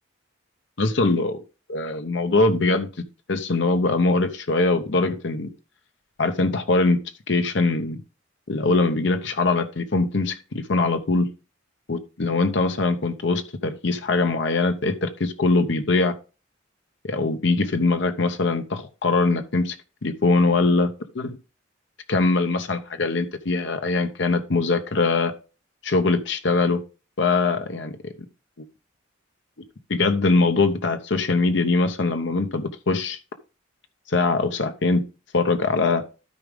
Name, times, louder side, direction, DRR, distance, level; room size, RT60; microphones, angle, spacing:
voice 1, 0.8-1.4 1.7-2.9 3.3-5.5 6.2-7.0 7.3-8.0 8.5-11.3 11.9-16.1 17.0-19.8 20.0-20.9 21.1-21.4 22.1-25.3 25.8-26.8 27.2-27.9 29.9-33.2 34.1-35.0 35.3-36.0, left 3 dB, 65° left, 0.8 m, -22 dB
12.5 x 4.9 x 3.6 m
head